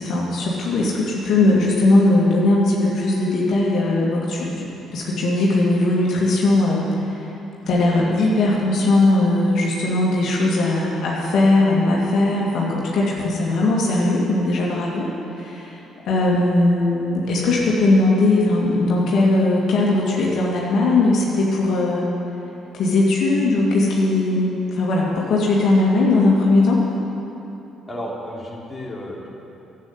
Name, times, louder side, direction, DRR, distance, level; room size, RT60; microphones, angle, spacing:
voice 1, 0.0-7.3 7.7-15.8 16.0-22.1 22.7-26.8, left 2 dB, 65° left, -4 dB, 2.3 m, -19 dB
voice 2, 27.9-29.3, equal, 20° left, -3 dB, 3.3 m, -32 dB
11.5 x 8.6 x 9.8 m, 2.9 s
hypercardioid pair, 50°, 0 cm